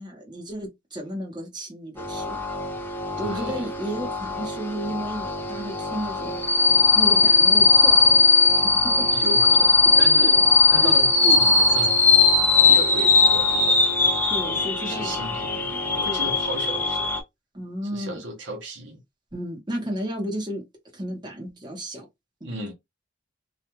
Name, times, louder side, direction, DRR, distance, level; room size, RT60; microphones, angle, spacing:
voice 1, 0.0-2.4 3.2-6.5 6.9-8.4 9.0-9.1 10.2-10.3 10.8-11.0 14.3-15.4 15.7-16.3 17.5-18.2 19.3-20.6 20.9-22.0 22.4-22.6, equal, 20° right, 1.0 m, -33 dB
sound 1, 2.0-17.2, left 3 dB, 10° left, 0.4 m, -19 dB
voice 2, 3.2-3.7 9.1-12.0 12.7-13.9 14.8-17.1 17.9-19.0 22.4-22.7, right 1 dB, 65° right, 0.9 m, -35 dB
2.4 x 2.3 x 3.0 m
head